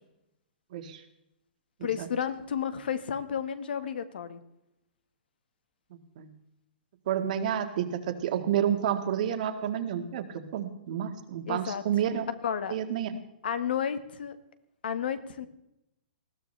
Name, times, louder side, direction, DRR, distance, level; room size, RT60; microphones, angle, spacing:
voice 1, 0.7-1.0 1.8-2.1 6.2-6.3 7.1-12.3 12.7-13.2, right 9 dB, 50° right, 7 dB, 1.7 m, -30 dB
voice 2, 1.8-4.4 11.5-11.8 12.4-12.7 13.4-14.4 14.8-15.5, left 8 dB, 75° left, 11 dB, 1.5 m, -32 dB
20.0 x 15.0 x 3.3 m, 0.85 s
hypercardioid pair, 165°, 5 cm